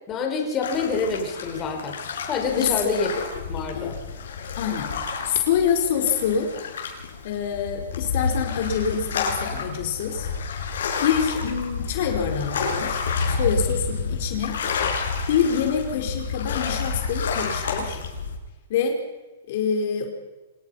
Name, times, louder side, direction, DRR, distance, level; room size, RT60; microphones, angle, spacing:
voice 1, 0.1-2.0 2.3-3.1 3.5-3.9, left 4 dB, 25° left, 2 dB, 5.0 m, -27 dB
sound 1, 0.6-18.4, left 5 dB, 75° left, 7.7 m, -29 dB
voice 2, 2.6-2.9 3.7-3.9 4.6-4.9 5.2-6.5 7.2-10.3 11.0-14.6 15.3-18.0 18.7-19.0 19.5-20.1, left 7 dB, 55° left, 3 dB, 4.7 m, -25 dB
27.5 x 19.5 x 5.8 m, 1.2 s
hypercardioid pair, 150°, 0 cm